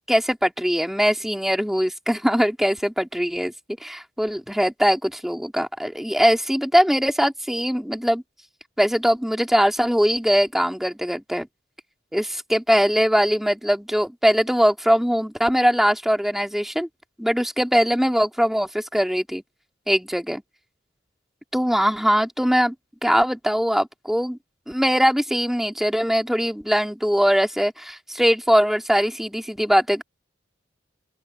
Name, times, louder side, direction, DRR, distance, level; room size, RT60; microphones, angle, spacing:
voice 1, 0.1-3.5 3.8-8.2 8.8-11.5 12.1-16.9 17.2-19.4 19.9-20.4 21.5-22.7 23.0-24.4 24.7-30.0, equal, ahead, 2.4 m, -21 dB
open air
head